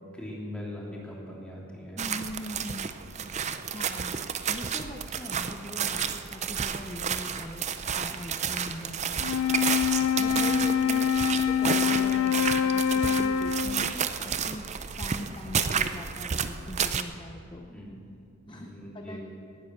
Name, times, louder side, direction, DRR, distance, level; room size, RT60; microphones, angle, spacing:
voice 1, 0.1-2.0 3.0-3.4 10.2-10.5 17.7-18.0 18.5-19.2, left 1 dB, 5° left, -5 dB, 2.9 m, -41 dB
voice 2, 2.0-2.9 3.3-4.2 4.5-7.7 7.9-9.3 10.2-11.1 11.4-14.7 15.0-17.7 18.5-19.2, left 1 dB, 20° left, 3 dB, 0.7 m, -41 dB
sound 1, 2.0-17.0, right 7 dB, 30° right, 0.5 m, -31 dB
Wind instrument woodwind instrument, 9.2-14.0, left 8 dB, 85° left, 0.4 m, -25 dB
18.5 x 9.6 x 6.6 m, 2.5 s
head